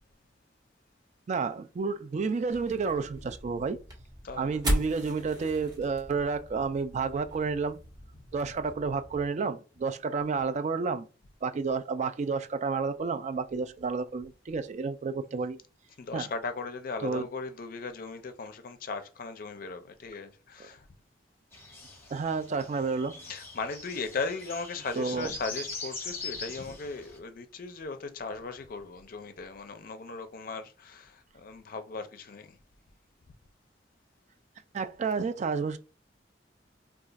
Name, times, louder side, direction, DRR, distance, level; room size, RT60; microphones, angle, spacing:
voice 1, 1.3-3.8 4.4-7.8 8.3-11.1 11.4-15.6 16.1-16.3 17.0-17.3 22.1-23.2 25.0-25.3 34.7-35.8, right 4 dB, 40° right, 0.3 m, -30 dB
sound 1, 2.5-9.3, equal, 20° right, 1.2 m, -37 dB
voice 2, 4.2-4.6 15.1-15.3 16.0-20.9 23.3-32.6, left 4 dB, 50° left, 0.5 m, -38 dB
sound 2, 21.5-27.2, left 3 dB, 15° left, 1.0 m, -42 dB
2.4 x 2.4 x 3.9 m
head